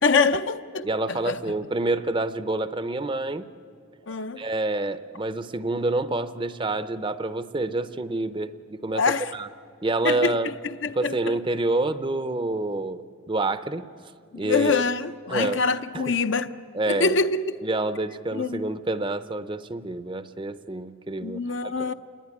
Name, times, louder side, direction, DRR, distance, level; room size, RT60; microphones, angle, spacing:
voice 1, 0.0-1.4 4.1-4.4 8.9-9.3 10.0-11.4 14.3-16.5 16.9-17.7 18.3-18.7 21.2-21.9, left 4 dB, 60° left, 0.7 m, -25 dB
voice 2, 0.8-3.4 4.4-9.0 9.3-9.5 9.8-10.5 10.9-13.9 14.4-14.9 15.3-15.6 15.9-16.0 16.7-17.2 17.6-21.7, right 2 dB, 25° right, 0.6 m, -27 dB
28.5 x 20.5 x 9.6 m
head